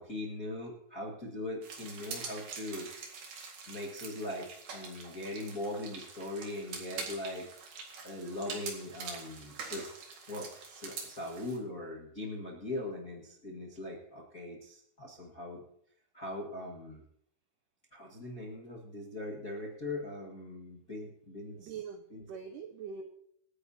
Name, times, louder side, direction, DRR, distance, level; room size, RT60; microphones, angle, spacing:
voice 1, 0.0-2.9 3.7-4.5 4.7-7.5 8.0-9.9 10.3-15.6 16.1-17.0 17.9-21.7 22.1-22.3 22.9-23.0, left 1 dB, 40° left, -3 dB, 1.2 m, -40 dB
sound 1, 1.6-11.6, right 4 dB, 55° right, 3.3 m, -45 dB
voice 2, 21.5-23.0, right 6 dB, 80° right, 5 dB, 1.9 m, -43 dB
27.0 x 9.8 x 2.9 m, 0.71 s
omnidirectional pair, 4.6 m